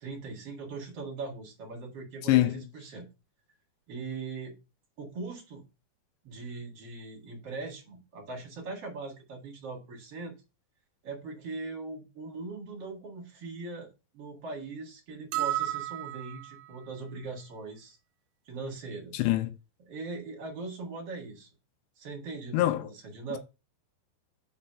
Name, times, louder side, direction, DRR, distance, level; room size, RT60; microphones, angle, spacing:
voice 1, 0.0-3.1 3.9-4.6 5.0-5.6 6.2-10.3 11.0-13.9 14.1-18.0 18.5-19.2 19.8-21.5 22.0-23.4, right 3 dB, 50° right, 1.9 m, -40 dB
voice 2, 2.2-2.6 19.1-19.5 22.5-22.9, left 15 dB, 80° left, 3.0 m, -24 dB
sound 1, 15.3-16.7, right 15 dB, 85° right, 2.3 m, -32 dB
5.8 x 5.6 x 4.5 m
omnidirectional pair, 5.1 m